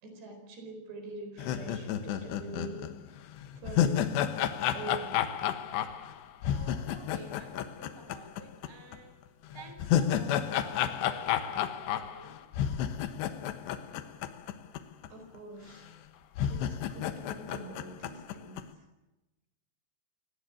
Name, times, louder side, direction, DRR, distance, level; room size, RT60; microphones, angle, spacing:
voice 1, 0.0-2.9 3.5-4.1 4.7-5.4 15.1-15.9 16.5-18.9, right 2 dB, 80° right, 6 dB, 6.7 m, -44 dB
sound 1, 1.4-8.7 8.9-9.0 9.5-14.8 15.0-15.1 15.9-16.0 16.4-18.6, left 10 dB, 85° left, 3.5 m, -31 dB
voice 2, 6.4-9.2 9.5-12.4, right 2 dB, 5° right, 7 dB, 3.2 m, -50 dB
26.5 x 18.5 x 8.6 m, 1.0 s
omnidirectional pair, 4.8 m